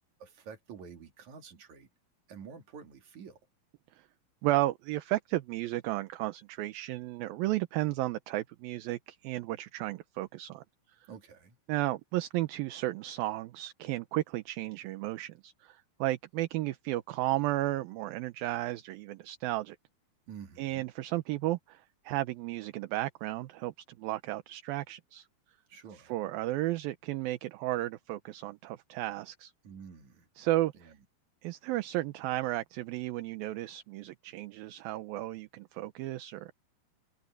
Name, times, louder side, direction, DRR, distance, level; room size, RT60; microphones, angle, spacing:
voice 1, 0.2-1.9 2.3-3.4 11.1-11.6 20.3-20.8 25.7-26.1 29.6-30.3 30.8-30.9, right 6 dB, 50° right, 3.8 m, -48 dB
voice 2, 4.4-10.6 11.7-19.8 20.6-25.3 25.9-29.5 30.4-30.9 31.4-36.5, right 16 dB, 75° right, 2.6 m, -33 dB
omnidirectional pair, 4.4 m